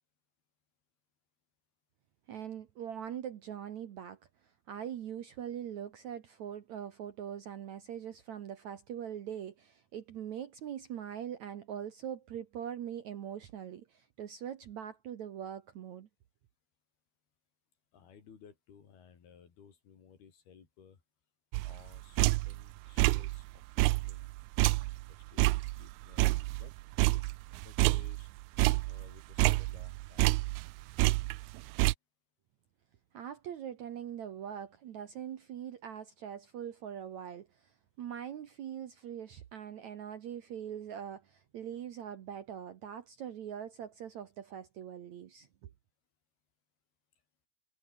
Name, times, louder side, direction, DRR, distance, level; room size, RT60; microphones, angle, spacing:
voice 1, 2.3-4.2 4.7-16.1 33.1-45.7, right 9 dB, 60° right, 2.1 m, -42 dB
voice 2, 17.9-21.0 21.6-24.3 24.6-26.7 27.1-27.3 27.6-28.3 28.8-30.4, left 7 dB, 70° left, 5.6 m, -58 dB
sound 1, 21.5-22.6 23.0-23.4 23.8-26.7 27.0-28.3 28.6-30.7 31.0-31.9, right 22 dB, 85° right, 2.4 m, -28 dB
omnidirectional pair, 4.7 m